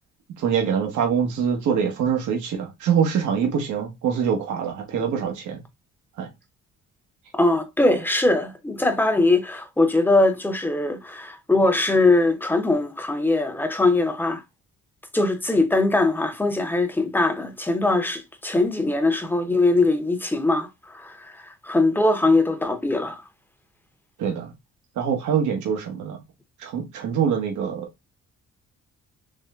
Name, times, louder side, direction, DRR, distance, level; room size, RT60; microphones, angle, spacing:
voice 1, 0.4-5.6 6.2-6.3 24.2-24.5 25.0-26.2 26.6-27.9, right 7 dB, 75° right, 1.0 m, -24 dB
voice 2, 7.3-14.4 15.1-23.2, left 2 dB, 5° left, 0.7 m, -21 dB
3.8 x 3.1 x 2.4 m
cardioid pair, 90°, 30 cm